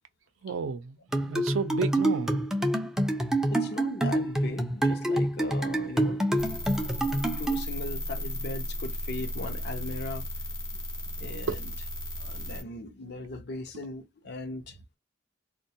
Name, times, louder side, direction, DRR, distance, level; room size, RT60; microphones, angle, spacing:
voice 1, 0.4-2.3 11.5-11.6, right 4 dB, 80° right, 0.5 m, -32 dB
sound 1, 1.1-7.7, right 1 dB, 5° right, 0.4 m, -27 dB
voice 2, 3.5-6.2 7.0-10.3 11.2-11.7 12.2-15.0, left 2 dB, 55° left, 0.6 m, -39 dB
sound 2, 6.4-12.6, left 1 dB, 80° left, 0.9 m, -35 dB
2.2 x 2.2 x 2.6 m
head